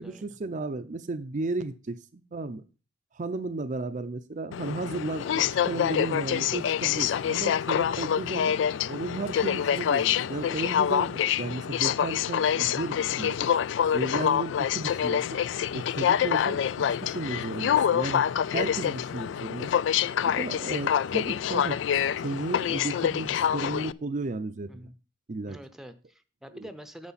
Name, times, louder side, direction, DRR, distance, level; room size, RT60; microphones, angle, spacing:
voice 1, 0.0-2.6 3.1-8.5 8.9-13.5 13.9-15.4 15.7-18.2 18.5-19.7 20.2-21.8 22.2-24.9 25.3-25.6 26.5-26.7, right 2 dB, 45° right, 9 dB, 0.5 m, -34 dB
Aircraft, 4.5-23.9, left 9 dB, 70° left, 0.3 m, -26 dB
voice 2, 25.5-27.1, equal, ahead, 10 dB, 0.7 m, -46 dB
9.6 x 6.7 x 4.1 m, 0.34 s
head